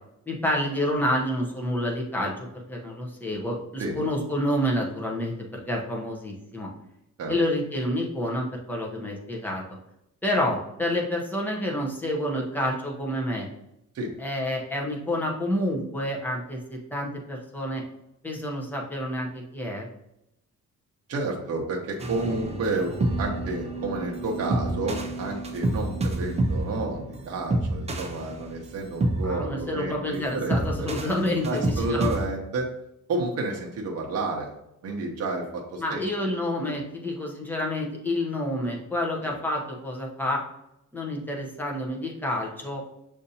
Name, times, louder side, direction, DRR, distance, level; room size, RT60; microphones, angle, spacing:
voice 1, 0.3-6.7 7.3-9.6 10.2-13.5 14.2-17.8 18.2-19.9 29.2-32.1 35.8-40.4 40.9-42.8, left 1 dB, 5° left, -2 dB, 0.7 m, -28 dB
voice 2, 21.1-30.9 31.4-32.7 33.1-34.5 34.8-36.0 36.7-36.8 39.2-39.3, right 2 dB, 50° right, -1 dB, 0.7 m, -31 dB
sound 1, 22.0-32.2, right 1 dB, 20° right, 0.4 m, -29 dB
6.6 x 2.6 x 2.7 m, 0.82 s
wide cardioid pair, 165°, 33 cm